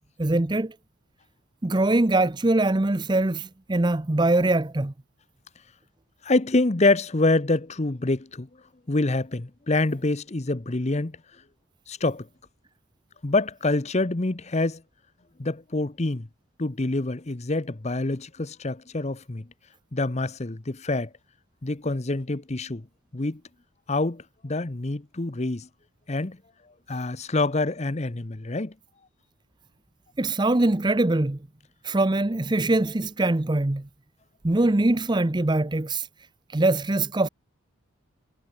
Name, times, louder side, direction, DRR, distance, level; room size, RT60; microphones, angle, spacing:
voice 1, 0.2-0.7 1.6-4.9 30.2-31.4 31.8-33.9 34.4-36.1 36.5-37.3, right 2 dB, 20° right, 0.6 m, -23 dB
voice 2, 6.2-8.5 8.9-11.1 11.9-12.3 13.2-14.8 15.4-16.3 16.6-19.4 19.9-21.1 21.6-22.8 23.1-23.4 23.9-25.7 26.1-26.4 26.9-28.7, left 2 dB, 30° left, 0.8 m, -26 dB
head